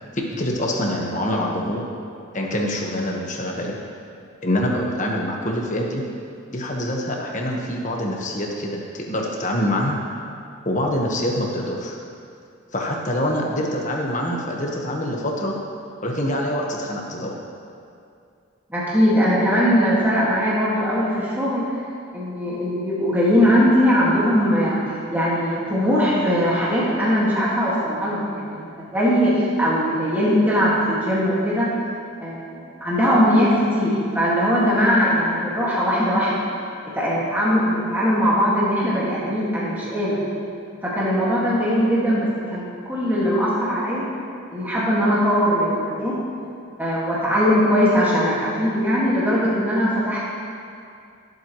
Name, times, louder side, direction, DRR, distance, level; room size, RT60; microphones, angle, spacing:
voice 1, 0.1-1.8 2.3-3.8 4.4-6.0 6.5-10.0 10.6-11.9 12.7-15.5 16.0-17.3, left 1 dB, 35° left, -1 dB, 1.3 m, -25 dB
voice 2, 18.7-21.8 22.1-31.7 32.2-36.4 36.9-40.2 40.8-44.1 44.5-46.1 46.8-50.2, equal, 10° right, -8 dB, 1.9 m, -20 dB
19.0 x 7.9 x 3.1 m, 2.4 s
head